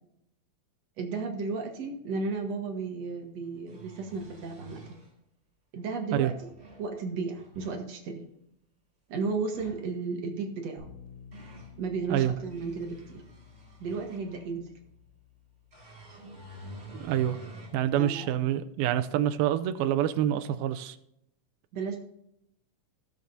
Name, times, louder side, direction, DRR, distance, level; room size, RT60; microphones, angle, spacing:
voice 1, 1.0-4.8 5.7-6.5 6.8-8.3 9.1-10.9 11.8-13.2 13.8-14.7 18.0-18.3 21.7-22.0, right 4 dB, 60° right, 3 dB, 2.1 m, -34 dB
sound 1, 2.5-2.6 3.4-5.1 6.1-6.9 7.3-7.8 9.4-9.9 10.8-11.7 12.3-14.5 15.7-17.8 18.3-18.4 20.0-20.1, right 1 dB, 15° right, 3.3 m, -49 dB
Bass guitar, 10.8-17.0, left 6 dB, 70° left, 6.4 m, -53 dB
voice 2, 16.9-17.4 17.7-21.0, right 11 dB, 85° right, 9 dB, 2.4 m, -27 dB
18.0 x 7.3 x 2.7 m, 0.77 s
omnidirectional pair, 4.2 m